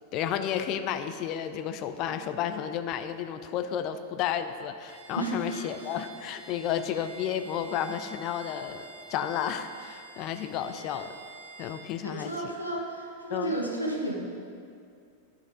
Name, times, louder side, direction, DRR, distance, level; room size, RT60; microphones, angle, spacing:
voice 1, 0.1-11.2 11.6-12.5 13.3-13.5, left 9 dB, 40° left, 10 dB, 0.5 m, -32 dB
Bowed string instrument, 4.8-12.0, right 3 dB, 65° right, 1.4 m, -48 dB
voice 2, 5.2-5.9 12.0-14.1, right 1 dB, 90° right, -1 dB, 1.3 m, -33 dB
11.0 x 6.5 x 5.0 m, 2.4 s
figure-of-eight pair, 90°, 0 cm